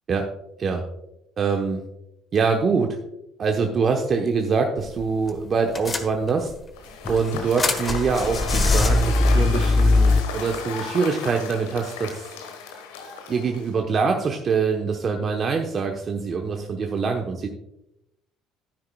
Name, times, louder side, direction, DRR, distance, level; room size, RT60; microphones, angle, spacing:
voice 1, 1.4-1.8 2.3-3.0 3.4-6.5 7.1-12.3 13.3-17.5, right 5 dB, 45° right, 3 dB, 1.0 m, -24 dB
sound 1, 4.8-5.0 5.3-5.4 5.8-6.5 7.0-10.2, left 2 dB, 30° left, 1.3 m, -20 dB
Cheering / Applause / Crowd, 6.8-13.8, left 6 dB, 80° left, 1.3 m, -35 dB
12.0 x 9.6 x 2.3 m, 0.85 s
hypercardioid pair, 60°, 0 cm